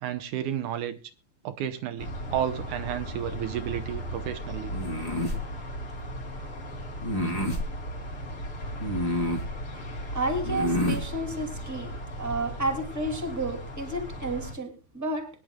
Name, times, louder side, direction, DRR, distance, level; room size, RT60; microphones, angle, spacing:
voice 1, 0.0-1.0 1.4-4.7, right 10 dB, 80° right, 2.4 m, -32 dB
sound 1, 2.0-14.6, equal, 45° left, 3.9 m, -37 dB
sound 2, 4.7-5.4 7.0-7.7 8.8-9.5 10.4-11.0, left 1 dB, 15° left, 2.2 m, -28 dB
voice 2, 10.1-11.9 12.2-15.3, right 1 dB, 5° right, 2.4 m, -31 dB
23.0 x 10.5 x 2.3 m
omnidirectional pair, 3.5 m